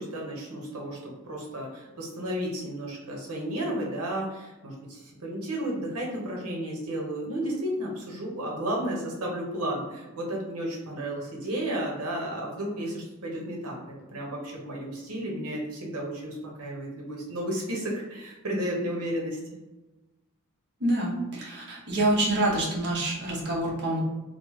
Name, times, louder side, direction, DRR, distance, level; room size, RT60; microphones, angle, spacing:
voice 1, 0.0-13.8 14.1-19.6, right 1 dB, 85° right, -1 dB, 0.9 m, -33 dB
voice 2, 20.8-24.0, right 1 dB, 50° right, -3 dB, 0.9 m, -26 dB
3.2 x 2.0 x 3.1 m, 1.1 s
head